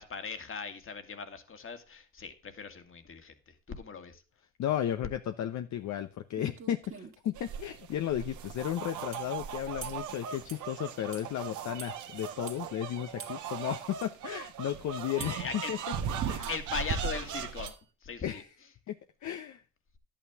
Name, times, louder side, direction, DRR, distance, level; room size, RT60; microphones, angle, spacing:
voice 1, 0.0-4.2 15.2-15.7 16.5-17.8 18.0-18.4, left 5 dB, 45° left, 8 dB, 2.0 m, -39 dB
voice 2, 4.6-15.8 16.3-16.5 18.2-18.5 18.9-19.0 19.2-19.6, left 11 dB, 70° left, 8 dB, 0.8 m, -34 dB
sound 1, 6.0-6.1 6.4-7.3 9.1-9.3 9.8-10.1 10.5-10.7 11.1-11.3 11.8-12.0 12.5-12.6 13.2-13.4 14.0-14.1 15.2-15.5 16.4-16.7 17.7-17.9, right 5 dB, 45° right, 2.0 m, -46 dB
sound 2, 7.3-17.7, right 7 dB, 80° right, 1.4 m, -38 dB
11.0 x 8.8 x 3.5 m, 0.34 s
cardioid pair, 90°, 30 cm